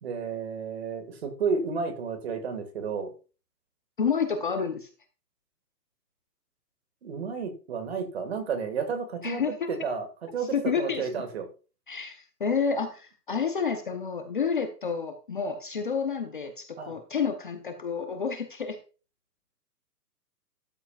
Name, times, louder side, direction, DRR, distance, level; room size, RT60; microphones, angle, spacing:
voice 1, 0.0-3.1 7.0-9.4 9.7-10.1 10.3-11.5 16.8-17.0, right 5 dB, 40° right, 8 dB, 1.8 m, -31 dB
voice 2, 4.0-4.9 9.2-9.7 10.5-11.1 11.9-18.8, left 6 dB, 30° left, 7 dB, 0.8 m, -29 dB
12.5 x 8.1 x 2.3 m, 0.35 s
hypercardioid pair, 175°, 49 cm